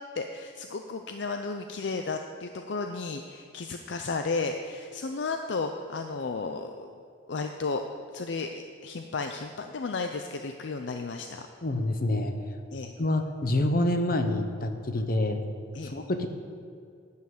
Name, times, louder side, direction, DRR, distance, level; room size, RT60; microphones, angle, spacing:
voice 1, 0.1-6.9 7.3-7.8 8.1-11.5 12.7-12.9 15.7-15.9, left 4 dB, 65° left, 5 dB, 0.5 m, -33 dB
voice 2, 11.6-12.3 13.0-15.4 15.8-16.3, left 1 dB, 50° left, 7 dB, 0.9 m, -27 dB
11.5 x 5.6 x 7.8 m, 2.3 s
head